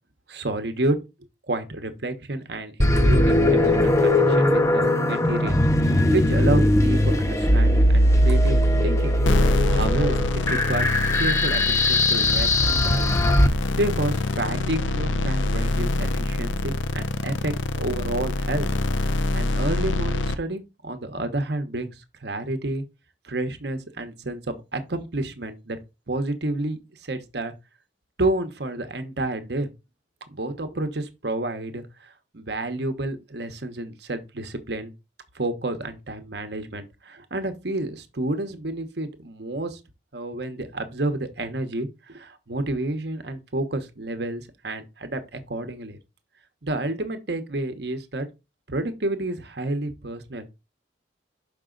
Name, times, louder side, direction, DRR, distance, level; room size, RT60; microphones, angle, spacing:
voice 1, 0.3-1.0 1.5-9.2 9.7-10.9 11.1-13.2 13.8-18.7 19.1-22.0 22.2-22.8 23.2-25.8 26.1-27.5 28.2-29.7 30.3-34.9 35.3-39.8 40.1-46.0 46.6-48.3 48.7-50.5, right 2 dB, 60° right, 1.0 m, -30 dB
sound 1, 2.8-13.5, left 1 dB, 15° left, 0.6 m, -20 dB
sound 2, 9.2-20.3, left 2 dB, 80° left, 0.7 m, -25 dB
6.2 x 5.3 x 3.9 m
head